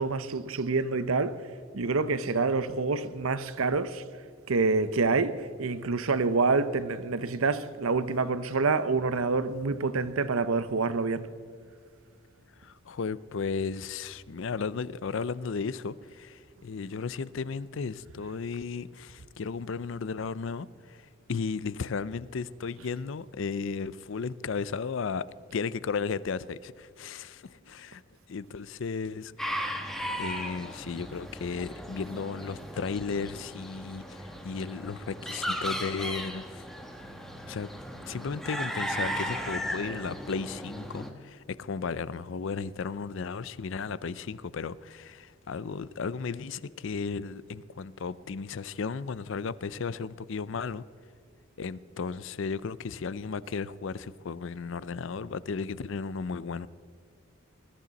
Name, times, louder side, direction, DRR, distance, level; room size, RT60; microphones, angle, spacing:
voice 1, 0.0-1.4 1.7-4.0 4.5-11.3, right 4 dB, 75° right, 0.8 m, -27 dB
voice 2, 12.6-28.0 28.3-29.5 30.1-36.6 37.5-37.7 38.0-50.8 51.6-56.7, left 5 dB, 60° left, 0.5 m, -35 dB
sound 1, 29.4-41.1, equal, ahead, 1.1 m, -36 dB
20.5 x 13.5 x 4.1 m
head